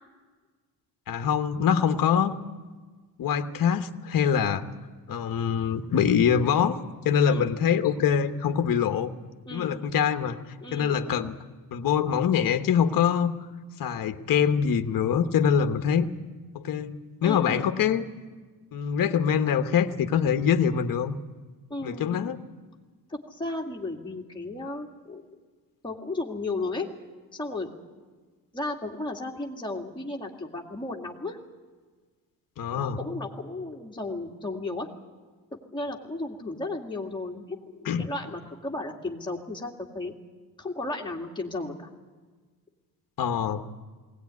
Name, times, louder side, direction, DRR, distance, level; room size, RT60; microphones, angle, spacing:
voice 1, 1.1-2.4 3.2-4.6 5.1-6.8 7.0-9.1 9.5-10.4 10.7-11.3 11.7-13.3 13.8-16.0 16.5-18.0 18.7-21.2 21.8-22.4 32.6-33.0 37.8-38.1 43.2-43.6, left 7 dB, 60° left, 7 dB, 1.2 m, -24 dB
voice 2, 10.6-11.0 17.2-17.7 21.7-22.2 23.1-25.2 25.8-26.9 27.3-27.7 28.5-31.4 32.7-34.9 35.7-40.1 40.6-41.9, left 2 dB, 10° left, 0 dB, 2.1 m, -34 dB
20.5 x 18.0 x 9.5 m, 1.4 s
cardioid pair, 170°, 38 cm